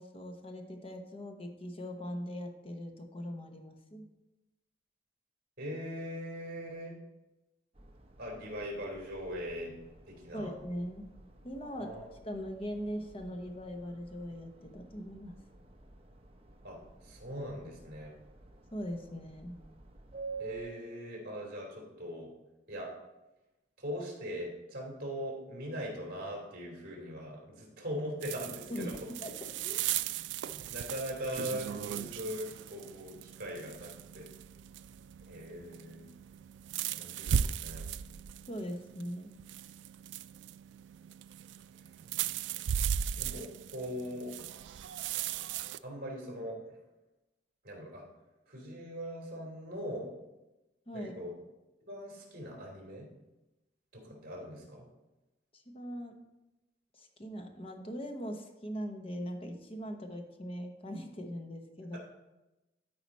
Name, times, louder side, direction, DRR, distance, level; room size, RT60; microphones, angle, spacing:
voice 1, 0.0-4.1 10.3-11.1 11.4-11.9 12.2-15.3 18.7-19.6 28.7-29.3 29.6-29.9 38.5-39.3 50.9-51.1 55.5-56.2 56.9-62.0, equal, 30° left, 4 dB, 1.0 m, -40 dB
voice 2, 5.6-7.0 8.2-9.7 10.1-10.5 11.6-12.1 16.6-16.8 17.0-18.1 20.4-22.3 22.7-22.9 23.8-28.9 30.5-34.3 35.2-36.1 36.9-37.9 43.1-44.3 45.8-46.6 47.6-48.0 48.5-50.2 50.9-51.3 51.8-53.1 53.9-54.8 61.9-62.0, equal, 50° right, -1 dB, 3.1 m, -41 dB
sound 1, 7.7-20.7, right 4 dB, 30° right, 0.8 m, -50 dB
sound 2, 28.2-45.8, right 9 dB, 75° right, 0.3 m, -38 dB
12.5 x 4.9 x 4.2 m, 1.0 s
head